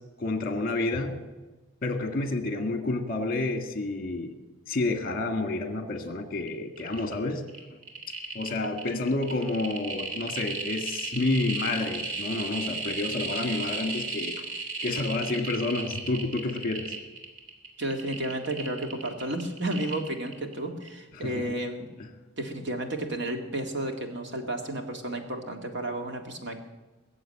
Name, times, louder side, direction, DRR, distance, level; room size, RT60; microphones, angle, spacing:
voice 1, 0.2-1.1 1.8-4.3 4.7-7.4 8.3-14.4 14.8-17.0 21.2-21.4, left 2 dB, 40° left, 7 dB, 1.7 m, -29 dB
sound 1, 6.5-6.6 6.8-7.1 7.5-20.5 20.8-20.9, right 3 dB, 80° right, 3.2 m, -35 dB
voice 2, 17.8-21.9 22.4-26.6, right 1 dB, 55° right, 4 dB, 2.1 m, -32 dB
21.0 x 7.6 x 8.9 m, 1.2 s
head